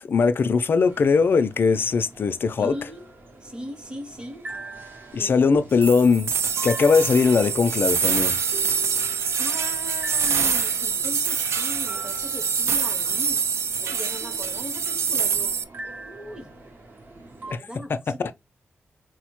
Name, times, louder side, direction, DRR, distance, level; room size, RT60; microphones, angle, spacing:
voice 1, 0.0-2.8 5.1-6.3 6.6-8.4 17.9-18.3, left 5 dB, 55° left, 0.3 m, -20 dB
sound 1, 0.9-17.6, right 2 dB, 50° right, 0.8 m, -43 dB
voice 2, 2.6-3.1 3.4-4.5 5.1-5.6 9.4-13.4 13.8-15.5 16.0-16.5 17.5-18.3, equal, 20° right, 0.8 m, -38 dB
sound 2, 5.8-15.6, right 6 dB, 80° right, 0.3 m, -25 dB
4.3 x 2.1 x 2.9 m
wide cardioid pair, 150°, 4 cm